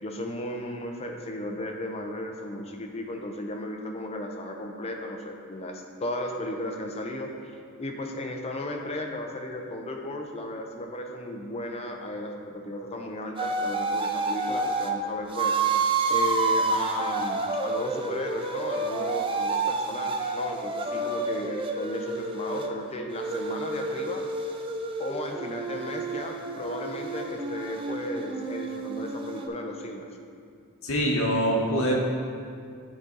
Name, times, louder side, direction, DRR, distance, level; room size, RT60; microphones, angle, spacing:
voice 1, 0.0-7.3 7.8-24.2 25.0-30.0, left 1 dB, 30° left, 2 dB, 0.5 m, -35 dB
sound 1, 13.4-14.9 15.3-22.7 23.1-29.5, right 3 dB, 25° right, 0.3 m, -29 dB
voice 2, 30.8-31.9, equal, 65° left, -2 dB, 1.1 m, -24 dB
8.8 x 4.0 x 3.9 m, 2.3 s
head